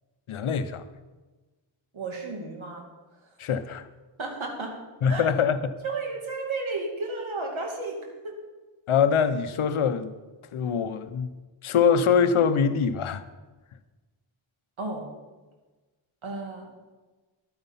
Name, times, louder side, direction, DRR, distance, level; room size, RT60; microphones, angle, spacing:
voice 1, 0.3-0.8 3.4-3.9 5.0-5.7 8.9-10.1 10.5-11.3 11.6-13.2, left 6 dB, 90° left, 0.8 m, -23 dB
voice 2, 1.9-2.8 4.2-4.7 5.0-5.3 5.8-8.0 8.2-8.4 14.8-15.0 16.2-16.7, right 3 dB, 70° right, 2.6 m, -33 dB
11.5 x 9.4 x 5.7 m
wide cardioid pair, 100°, 49 cm